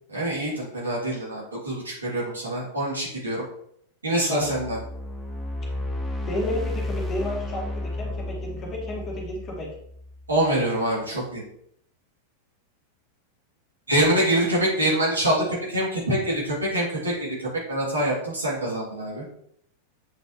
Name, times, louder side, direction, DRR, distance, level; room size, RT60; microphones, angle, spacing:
voice 1, 0.1-3.4 4.0-4.8 10.3-11.4 13.9-19.2, right 1 dB, 75° right, -5 dB, 2.8 m, -25 dB
sound 1, 4.4-10.6, left 1 dB, 5° left, 1.6 m, -33 dB
voice 2, 6.3-9.7 10.4-10.8, left 1 dB, 25° left, -1 dB, 2.0 m, -32 dB
7.8 x 5.2 x 3.2 m, 0.69 s
figure-of-eight pair, 90°, 0 cm